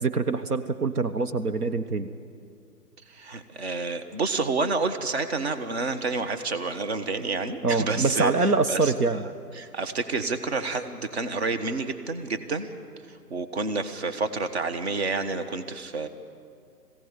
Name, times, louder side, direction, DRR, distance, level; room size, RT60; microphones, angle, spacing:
voice 1, 0.0-2.1 7.6-9.2, right 3 dB, 65° right, 9 dB, 1.2 m, -24 dB
voice 2, 3.1-9.2 9.5-12.7 13.1-16.1, right 3 dB, 40° right, 8 dB, 1.3 m, -29 dB
20.5 x 16.5 x 9.6 m, 2.4 s
figure-of-eight pair, 150°, 48 cm